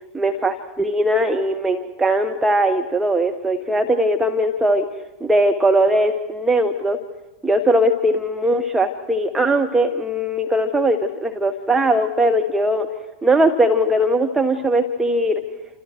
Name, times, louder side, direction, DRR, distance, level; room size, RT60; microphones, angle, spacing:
voice 1, 0.1-4.9 5.2-7.0 7.4-12.9 13.2-15.4, right 1 dB, 10° right, 4 dB, 1.4 m, -19 dB
29.0 x 28.0 x 4.6 m, 1.1 s
figure-of-eight pair, 90°, 3 cm